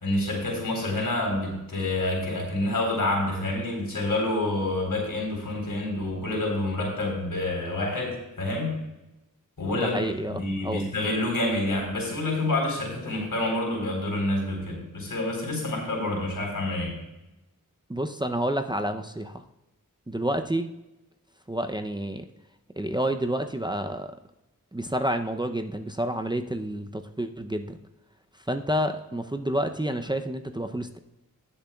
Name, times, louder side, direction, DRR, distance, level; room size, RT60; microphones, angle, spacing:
voice 1, 0.0-8.8 9.6-10.0 10.3-17.0, left 2 dB, 75° left, -1 dB, 4.0 m, -28 dB
voice 2, 9.8-10.8 17.9-19.4 20.1-20.7 21.5-22.2 22.8-24.1 24.7-27.8 28.5-31.0, right 1 dB, 15° right, 6 dB, 0.6 m, -29 dB
20.0 x 6.8 x 2.4 m, 0.98 s
wide cardioid pair, 55°, 34 cm